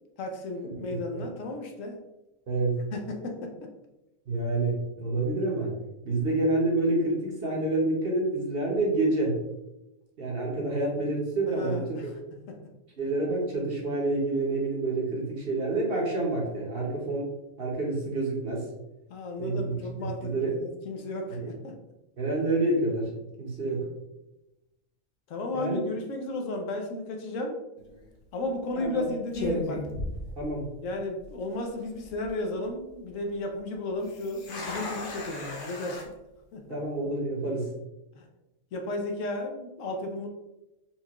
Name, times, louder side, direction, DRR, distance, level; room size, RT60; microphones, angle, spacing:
voice 1, 0.2-2.0 2.9-3.7 11.5-12.1 12.5-12.6 19.1-21.8 23.6-23.8 25.3-27.6 28.3-29.9 30.8-36.0 36.5-36.8 38.1-38.3 38.7-40.3, left 2 dB, 75° left, 3 dB, 1.0 m, -34 dB
voice 2, 2.5-2.8 4.3-5.7 6.0-9.4 10.2-12.1 13.0-17.3 17.6-18.7 19.4-20.5 21.3-21.5 22.2-23.1 23.4-23.8 25.5-25.8 28.8-29.1 30.4-30.7 36.7-37.7, right 2 dB, 50° right, -2 dB, 0.9 m, -28 dB
sound 1, 27.8-28.1 28.8-29.0 29.3-30.9 31.2-31.3 31.9-32.3 34.0-36.0, left 1 dB, 50° left, 0.7 m, -35 dB
4.3 x 2.3 x 2.9 m, 0.96 s
omnidirectional pair, 1.4 m